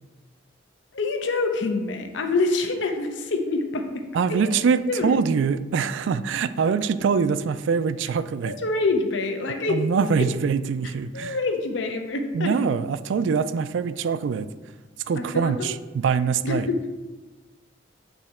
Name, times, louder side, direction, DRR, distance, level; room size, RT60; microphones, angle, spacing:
voice 1, 0.9-4.0 4.3-4.5 4.9-5.2 8.5-9.8 10.2-10.3 11.1-12.5 15.2-15.8 16.4-16.9, left 3 dB, 65° left, 5 dB, 0.6 m, -26 dB
voice 2, 4.1-8.5 9.7-11.4 12.3-14.5 15.1-16.7, right 6 dB, 65° right, 14 dB, 0.3 m, -24 dB
8.4 x 3.2 x 4.2 m, 1.2 s
head